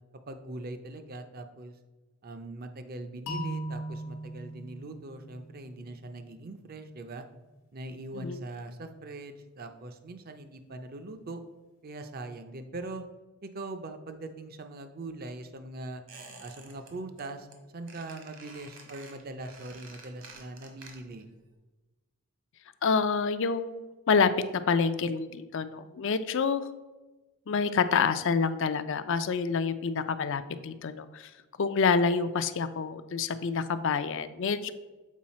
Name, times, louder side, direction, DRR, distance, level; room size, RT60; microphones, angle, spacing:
voice 1, 0.3-1.7 2.2-7.3 7.7-11.4 11.8-13.0 13.4-16.0 16.4-17.5 17.7-21.3, right 2 dB, 45° right, 8 dB, 0.6 m, -41 dB
sound 1, 3.3-6.2, right 1 dB, 75° left, 1.1 m, -39 dB
Squeak, 16.1-16.9 17.2-17.6 17.9-21.3 21.5-21.6, right 3 dB, 65° right, 1.3 m, -50 dB
voice 2, 22.8-23.8 24.1-24.3 24.7-26.7 27.5-31.3 31.6-34.7, left 5 dB, 60° left, 11 dB, 0.4 m, -27 dB
7.4 x 4.7 x 4.2 m, 1.2 s
head